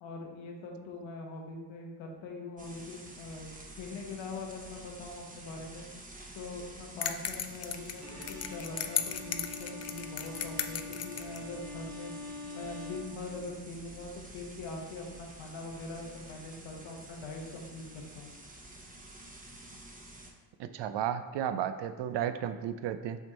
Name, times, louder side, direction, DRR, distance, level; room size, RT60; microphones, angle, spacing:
voice 1, 0.0-5.9 6.3-12.1 12.5-18.3, left 3 dB, 80° left, 1 dB, 1.3 m, -43 dB
sound 1, 2.6-20.3, right 1 dB, 20° right, 1.0 m, -50 dB
sound 2, 7.0-11.4, left 9 dB, 35° left, 0.4 m, -36 dB
Bowed string instrument, 8.0-13.9, left 2 dB, 35° right, 1.9 m, -45 dB
voice 2, 20.6-23.2, right 9 dB, 65° right, 10 dB, 0.6 m, -33 dB
6.3 x 3.6 x 4.1 m, 1.3 s
cardioid pair, 90°, 45 cm